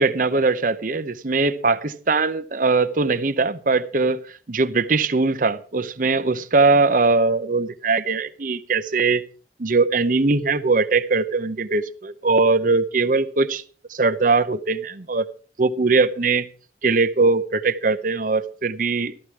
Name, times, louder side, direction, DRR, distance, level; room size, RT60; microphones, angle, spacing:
voice 1, 0.0-4.2 4.5-9.2 9.6-13.6 13.9-15.3 15.6-16.5 16.8-19.1, right 3 dB, 45° right, 0.8 m, -21 dB
14.0 x 13.5 x 4.7 m
head